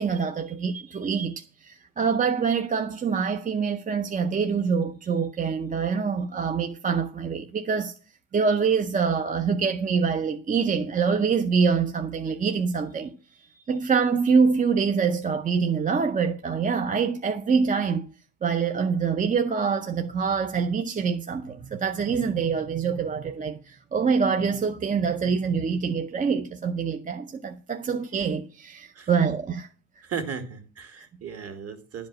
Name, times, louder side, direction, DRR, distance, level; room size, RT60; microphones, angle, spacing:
voice 1, 0.0-7.9 8.3-13.2 13.7-18.1 18.4-29.7, right 5 dB, 25° right, 0.6 m, -25 dB
voice 2, 30.0-32.1, right 6 dB, 45° right, 2.2 m, -36 dB
11.5 x 5.2 x 7.2 m
cardioid pair, 150°, 35 cm